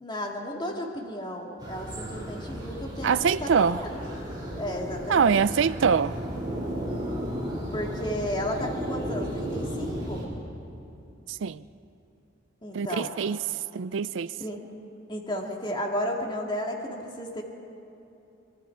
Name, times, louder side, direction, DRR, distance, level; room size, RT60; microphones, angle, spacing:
voice 1, 0.0-3.9 4.6-5.4 7.7-10.2 12.6-13.1 14.4-14.6 15.1-17.4, equal, 25° left, 2.2 m, -33 dB
sound 1, 1.6-10.2, equal, 25° right, 5.6 m, -34 dB
voice 2, 3.0-3.8 5.1-6.1 11.3-11.6 12.7-13.4 13.7-14.3, right 6 dB, 90° right, 0.4 m, -24 dB
24.0 x 23.5 x 4.6 m
head